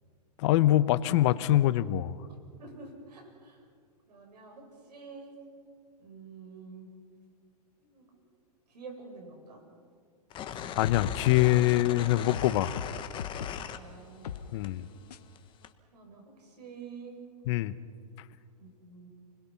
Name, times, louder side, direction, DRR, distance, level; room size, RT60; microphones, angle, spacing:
voice 1, 0.4-2.1 10.7-12.8 14.5-14.9 17.5-17.7, left 14 dB, 45° left, 15 dB, 0.9 m, -24 dB
voice 2, 2.6-3.7 4.1-5.3 6.0-6.9 7.8-8.1 8.7-9.6 13.7-14.5 15.9-17.2 18.6-19.1, right 4 dB, 75° right, 3 dB, 7.3 m, -48 dB
sound 1, 10.3-14.4 14.6-15.7, left 9 dB, 25° left, 1.3 m, -39 dB
sound 2, 10.6-11.9 12.3-13.7 14.2-14.5 15.1-15.2, left 8 dB, 75° left, 1.2 m, -38 dB
28.5 x 21.5 x 5.9 m, 2.2 s
hypercardioid pair, 130°, 21 cm